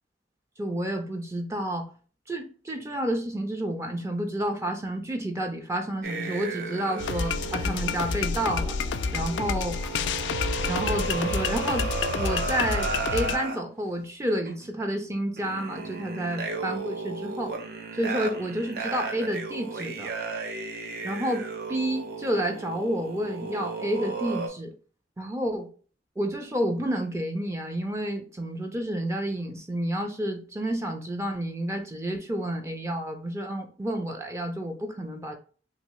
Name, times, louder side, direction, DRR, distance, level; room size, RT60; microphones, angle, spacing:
voice 1, 0.6-1.9 2.3-8.7 9.1-9.7 10.7-11.9 12.1-17.5 17.9-20.1 21.0-24.7 25.2-25.7 26.2-35.3, right 1 dB, 15° right, 4 dB, 0.4 m, -30 dB
sound 1, 6.0-13.6 14.5-14.7 15.4-24.5, right 4 dB, 60° right, 0.5 m, -34 dB
sound 2, 7.0-13.4, left 5 dB, 90° left, 0.3 m, -29 dB
2.9 x 2.7 x 3.0 m, 0.40 s
head